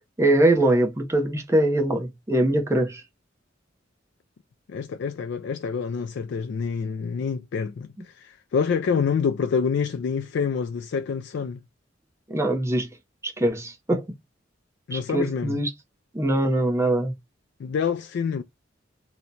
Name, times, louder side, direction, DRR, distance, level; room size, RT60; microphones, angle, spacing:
voice 1, 0.2-3.0 12.3-12.9 13.2-14.1 14.9-15.7 16.1-17.1, right 1 dB, 15° right, 0.7 m, -22 dB
voice 2, 4.7-11.6 14.9-15.6 17.6-18.4, left 6 dB, 65° left, 0.3 m, -27 dB
2.8 x 2.1 x 3.9 m
head